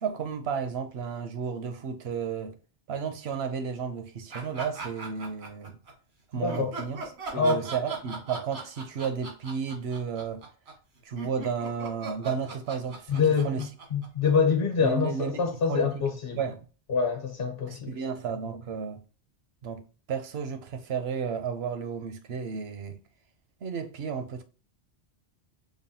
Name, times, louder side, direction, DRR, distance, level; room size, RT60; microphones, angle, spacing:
voice 1, 0.0-2.5 2.9-5.8 6.3-7.0 7.3-10.5 11.0-13.6 14.8-16.0 16.3-16.6 17.7-19.0 19.6-23.0 23.6-24.4, right 6 dB, 70° right, 0.9 m, -33 dB
sound 1, 4.3-5.9 6.5-14.7, right 3 dB, 90° right, 1.7 m, -40 dB
voice 2, 7.3-7.7 13.1-16.4 16.9-17.9, left 5 dB, 55° left, 1.2 m, -26 dB
5.3 x 2.3 x 2.7 m
omnidirectional pair, 1.1 m